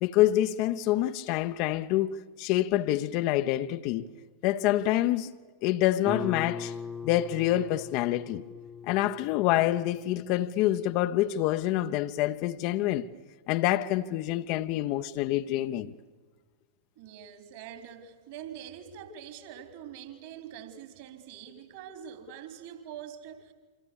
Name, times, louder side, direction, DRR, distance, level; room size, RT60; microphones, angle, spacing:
voice 1, 0.0-4.0 4.4-5.3 5.6-6.7 7.0-8.4 8.9-13.1 13.5-15.9, left 14 dB, 45° left, 0.8 m, -26 dB
Guitar, 6.0-11.5, left 4 dB, ahead, 1.2 m, -41 dB
voice 2, 17.0-23.5, right 9 dB, 50° right, 3.5 m, -44 dB
27.5 x 26.0 x 7.1 m
figure-of-eight pair, 90°, 0 cm